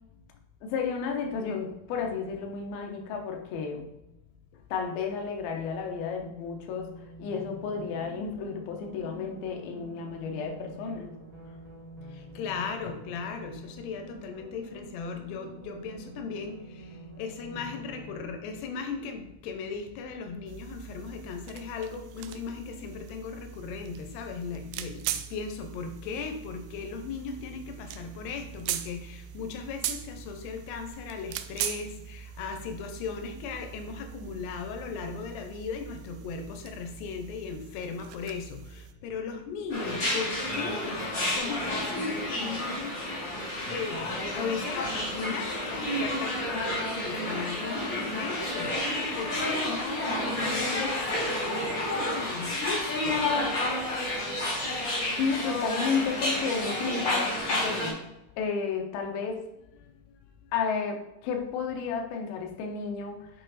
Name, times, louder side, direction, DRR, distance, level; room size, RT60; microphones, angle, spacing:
voice 1, 0.6-3.8 4.7-6.9 7.2-11.1 55.2-58.0 58.4-59.4 60.5-63.3, left 5 dB, 75° left, 2 dB, 2.6 m, -32 dB
sound 1, 6.2-18.2, right 2 dB, 35° right, 2.4 m, -47 dB
voice 2, 12.4-16.6 17.2-42.9 43.3-43.4 43.7-48.8 49.0-53.2, left 5 dB, 90° left, 5 dB, 2.9 m, -37 dB
sound 2, 20.5-38.9, right 11 dB, 85° right, 2.4 m, -41 dB
sound 3, 39.7-57.9, left 1 dB, 40° left, 1.9 m, -30 dB
7.9 x 4.5 x 4.0 m, 0.90 s
omnidirectional pair, 4.6 m